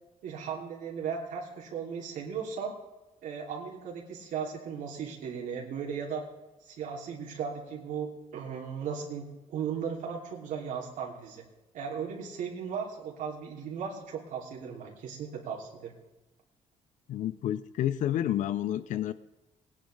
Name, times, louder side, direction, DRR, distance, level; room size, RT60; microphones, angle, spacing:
voice 1, 0.2-2.7 3.2-6.2 6.6-11.4 11.7-15.9, right 6 dB, 85° right, -2 dB, 2.9 m, -36 dB
voice 2, 17.1-19.1, left 11 dB, 75° left, 15 dB, 0.6 m, -30 dB
19.5 x 10.5 x 3.3 m, 1.0 s
cardioid pair, 130°, 13 cm